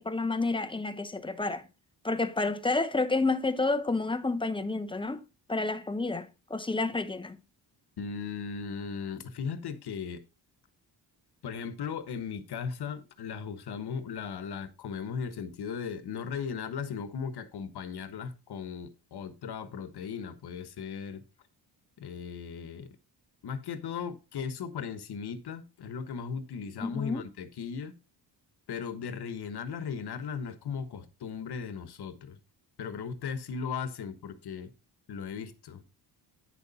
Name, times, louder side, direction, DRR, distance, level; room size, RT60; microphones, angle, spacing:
voice 1, 0.0-1.6 2.0-5.2 5.5-7.4 26.8-27.2, left 3 dB, 10° left, 0.7 m, -30 dB
voice 2, 8.0-10.2 11.4-21.2 22.0-22.9 23.4-28.0 28.7-32.4 32.8-34.7 35.1-35.8, left 6 dB, 65° left, 1.2 m, -37 dB
9.4 x 6.8 x 4.1 m
cardioid pair, 125°, 43 cm